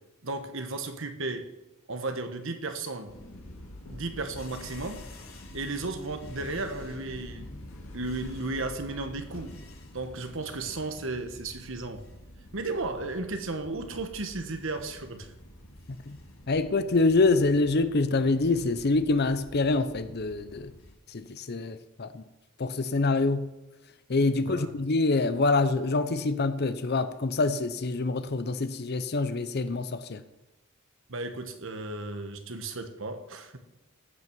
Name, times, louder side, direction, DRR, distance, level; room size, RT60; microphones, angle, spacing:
voice 1, 0.2-1.5 1.9-3.1 3.9-5.0 5.5-7.5 7.9-9.5 9.9-12.0 12.5-15.3 24.3-24.7 31.1-33.6, right 3 dB, 60° right, 1.3 m, -34 dB
sound 1, 3.1-20.9, left 1 dB, 75° left, 2.2 m, -47 dB
voice 2, 16.5-20.7 21.1-22.2 22.6-23.5 24.1-30.2, left 3 dB, 50° left, 0.6 m, -26 dB
15.0 x 6.0 x 6.1 m
head